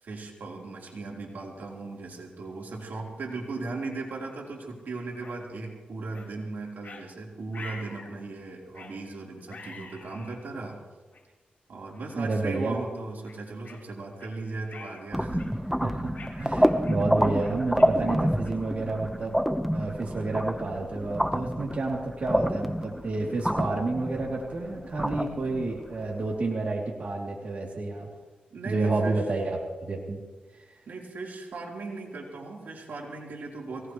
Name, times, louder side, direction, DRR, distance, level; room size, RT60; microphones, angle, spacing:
voice 1, 0.0-10.8 11.7-15.5 28.5-29.2 30.9-33.9, right 3 dB, 75° right, -2 dB, 4.0 m, -37 dB
sound 1, 5.2-5.4 6.1-6.3 6.8-7.0 7.5-8.1 8.7-9.0 9.5-10.4 11.1-11.2 11.9-12.1 12.6-12.7 13.3-14.3 14.7-15.0 15.4-15.7 16.2-18.7, left 4 dB, 60° left, 5.2 m, -46 dB
voice 2, 12.1-12.8 15.8-19.4 19.7-28.1 28.6-30.2, right 3 dB, 50° right, -3 dB, 3.0 m, -30 dB
sound 2, 15.1-26.2, equal, ahead, 1.1 m, -28 dB
23.5 x 18.5 x 3.2 m, 1.3 s
cardioid pair, 75°, 3 cm